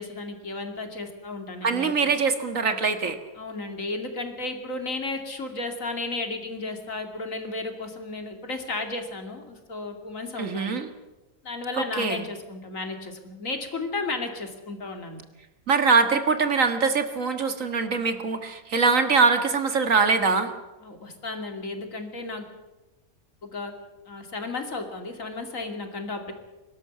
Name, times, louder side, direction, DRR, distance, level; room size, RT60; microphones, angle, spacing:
voice 1, 0.0-2.1 3.4-10.9 11.4-15.2 20.8-22.5 23.4-23.7 24.1-26.3, left 3 dB, 65° left, 5 dB, 3.0 m, -34 dB
voice 2, 1.6-3.2 10.4-10.9 12.0-12.2 15.7-20.5, right 4 dB, 65° right, 8 dB, 2.0 m, -23 dB
23.5 x 12.5 x 9.5 m, 1.1 s
omnidirectional pair, 1.5 m